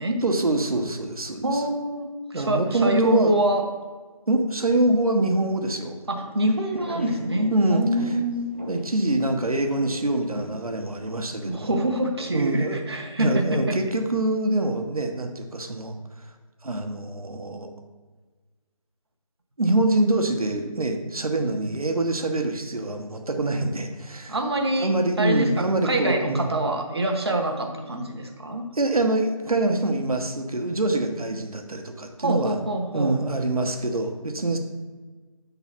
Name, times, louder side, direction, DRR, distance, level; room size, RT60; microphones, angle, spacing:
voice 1, 0.2-1.6 2.3-3.3 4.3-6.0 6.9-7.0 7.5-7.8 8.7-11.7 12.3-12.8 13.2-15.9 16.6-17.7 19.6-24.4 24.8-26.5 28.7-32.6 32.9-34.6, right 2 dB, 75° right, 4 dB, 1.1 m, -25 dB
voice 2, 1.4-3.6 6.1-8.5 11.4-13.8 24.3-24.9 25.2-28.7 31.3-31.4 32.2-33.2, right 1 dB, 45° right, 2 dB, 1.0 m, -25 dB
sound 1, 6.1-11.4, equal, 20° right, 0.5 m, -41 dB
7.2 x 3.9 x 5.6 m, 1.4 s
figure-of-eight pair, 170°, 19 cm